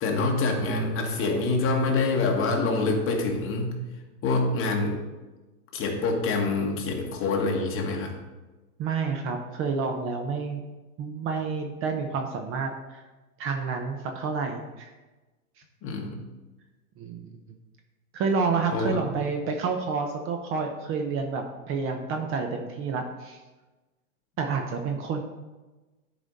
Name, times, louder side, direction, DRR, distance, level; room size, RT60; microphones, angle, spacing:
voice 1, 0.0-3.8 4.2-5.0 5.7-8.1 15.8-16.2 18.7-19.0, left 3 dB, 30° left, 1 dB, 1.6 m, -26 dB
voice 2, 8.8-10.6 11.0-13.0 13.4-14.9 17.0-17.3 18.1-23.4 24.4-25.2, right 5 dB, 30° right, 4 dB, 0.7 m, -29 dB
11.0 x 5.0 x 4.0 m, 1.2 s
hypercardioid pair, 125°, 44 cm